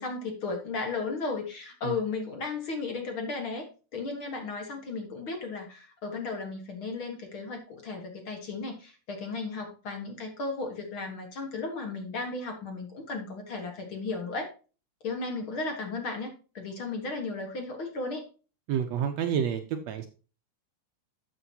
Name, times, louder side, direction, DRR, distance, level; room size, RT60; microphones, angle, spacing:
voice 1, 0.0-3.7 3.9-14.5 15.0-18.3, left 3 dB, 50° left, 4 dB, 1.9 m, -35 dB
voice 2, 18.7-19.6 19.9-20.1, right 8 dB, 70° right, 7 dB, 1.8 m, -28 dB
12.5 x 7.1 x 2.8 m, 0.35 s
omnidirectional pair, 3.6 m